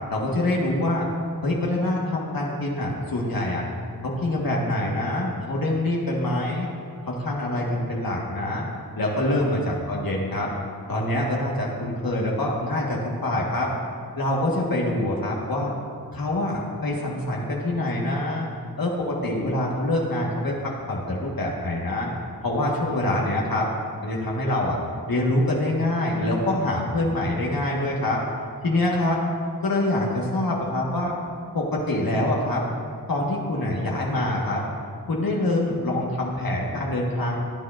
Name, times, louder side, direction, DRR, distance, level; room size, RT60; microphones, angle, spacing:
voice 1, 0.1-1.1 1.4-3.6 4.0-6.7 7.1-8.7 9.0-10.5 10.9-13.7 14.1-15.7 16.1-18.5 18.8-22.1 22.4-23.7 24.0-24.8 25.1-28.2 28.6-29.2 29.6-31.1 31.5-32.6 33.1-34.6 35.1-37.4, left 1 dB, 65° left, -3 dB, 1.5 m, -25 dB
16.0 x 9.5 x 2.5 m, 2.2 s
wide cardioid pair, 95°, 37 cm